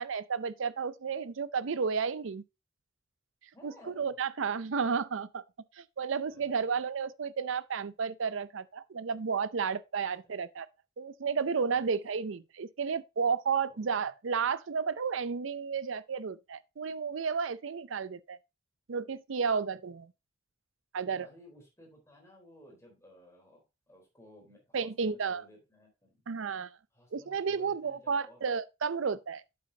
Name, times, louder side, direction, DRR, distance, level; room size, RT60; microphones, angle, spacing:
voice 1, 0.0-2.4 3.6-5.4 5.8-10.7 11.0-18.4 18.9-20.1 20.9-21.3 24.7-25.4 26.3-26.8 27.1-29.4, right 5 dB, 75° right, 0.5 m, -32 dB
voice 2, 3.5-4.1 6.3-6.8 10.2-10.3 11.7-11.8 12.2-12.3 13.7-13.9 21.2-26.2 26.9-28.4, left 1 dB, 15° left, 3.7 m, -57 dB
8.6 x 7.9 x 2.8 m
head